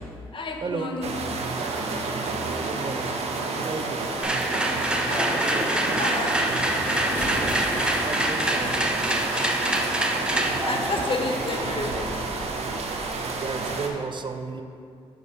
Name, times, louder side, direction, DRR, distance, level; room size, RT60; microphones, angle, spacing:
voice 1, 0.3-1.2 2.1-2.3 5.0-6.4 7.8-8.0 10.4-12.1 12.5-12.6, left 3 dB, 45° left, 2 dB, 0.9 m, -32 dB
sound 1, 1.0-13.9, right 3 dB, 65° right, 0.8 m, -30 dB
voice 2, 2.4-3.2 3.6-4.1 8.0-9.5 13.4-14.6, right 4 dB, 40° right, 6 dB, 0.5 m, -34 dB
sound 2, 4.2-12.2, right 1 dB, 10° right, 0.7 m, -26 dB
Waves surf, 6.6-12.6, left 1 dB, 15° left, 1.1 m, -37 dB
7.4 x 4.0 x 5.5 m, 2.4 s
cardioid pair, 65°, 12 cm